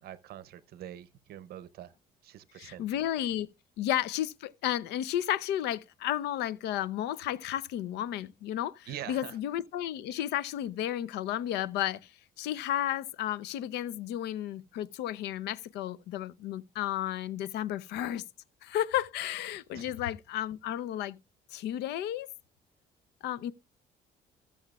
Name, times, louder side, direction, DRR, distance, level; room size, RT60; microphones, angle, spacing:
voice 1, 0.0-1.9 2.2-3.0 8.9-9.4 19.7-20.0, right 11 dB, 65° right, 0.7 m, -44 dB
voice 2, 2.6-3.5 3.8-12.1 12.4-18.2 18.6-21.2 21.5-22.3 23.2-23.5, left 12 dB, 80° left, 0.6 m, -33 dB
14.5 x 7.1 x 2.3 m
cardioid pair, 110°, 17 cm